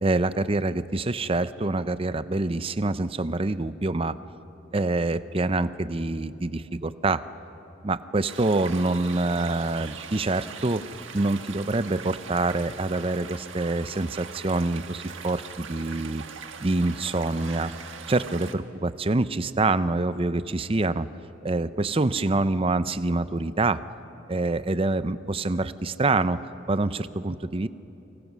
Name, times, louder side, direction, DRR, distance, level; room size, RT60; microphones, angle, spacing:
voice 1, 0.0-4.2 4.7-7.2 7.8-10.8 11.1-16.2 16.6-17.7 18.1-21.1 21.4-23.8 24.3-26.4 26.7-27.7, right 2 dB, 30° right, 13 dB, 0.6 m, -26 dB
sound 1, 8.3-18.5, right 6 dB, 70° right, 1.5 m, -41 dB
29.5 x 24.5 x 6.2 m, 2.9 s
head